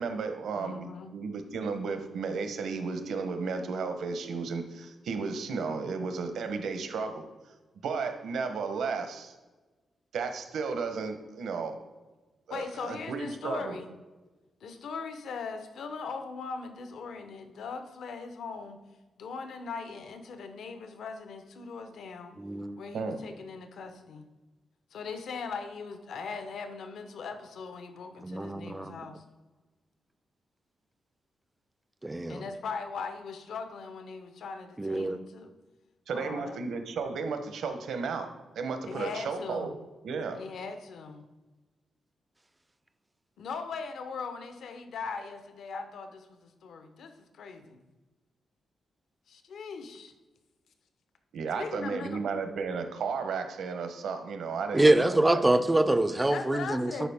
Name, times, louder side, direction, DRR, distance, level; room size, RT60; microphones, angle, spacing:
voice 1, 0.0-0.9 1.1-7.2 7.8-9.3 10.1-11.8 12.5-13.8 22.9-23.2 36.1-38.3 38.5-39.8 40.0-40.4 51.3-55.4, right 5 dB, 75° right, 7 dB, 0.9 m, -33 dB
voice 2, 0.5-1.1 12.5-13.9 14.6-18.8 19.2-22.3 22.8-24.3 24.9-29.2 32.3-35.5 36.1-36.6 38.9-39.7 40.3-41.2 43.4-47.8 49.3-50.1 51.6-52.2 56.3-57.1, left 5 dB, 70° left, 7 dB, 0.8 m, -40 dB
voice 3, 22.4-22.8 28.2-29.0 32.0-32.4 34.8-35.2 54.7-57.1, right 2 dB, 10° right, 11 dB, 0.4 m, -25 dB
11.5 x 4.6 x 3.5 m, 1.2 s
wide cardioid pair, 180°, 0 cm